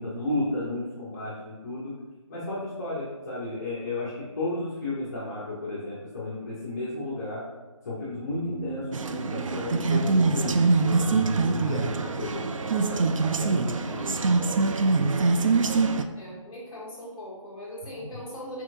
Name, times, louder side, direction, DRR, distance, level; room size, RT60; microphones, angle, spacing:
voice 1, 0.0-1.9 2.3-7.4 7.8-14.5 18.1-18.2, left 2 dB, 30° left, -8 dB, 0.7 m, -33 dB
sound 1, 8.1-11.8, right 4 dB, 50° right, 0.8 m, -42 dB
sound 2, 8.9-16.0, right 3 dB, 70° right, 0.4 m, -24 dB
voice 2, 16.1-18.6, equal, 10° left, -10 dB, 1.4 m, -40 dB
4.4 x 4.1 x 2.5 m, 1.3 s
figure-of-eight pair, 160°, 17 cm